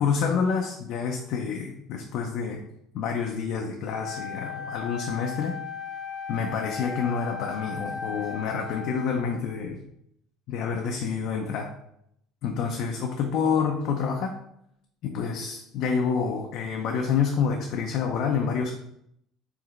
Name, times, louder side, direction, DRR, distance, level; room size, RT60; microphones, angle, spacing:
voice 1, 0.0-2.6 2.9-5.5 6.3-9.8 10.5-11.7 12.4-14.4 15.0-18.7, left 6 dB, 55° left, 2 dB, 0.5 m, -28 dB
Wind instrument woodwind instrument, 4.0-9.5, left 6 dB, 85° left, 0.8 m, -37 dB
4.7 x 3.3 x 3.1 m, 0.75 s
cardioid pair, 155°, 0 cm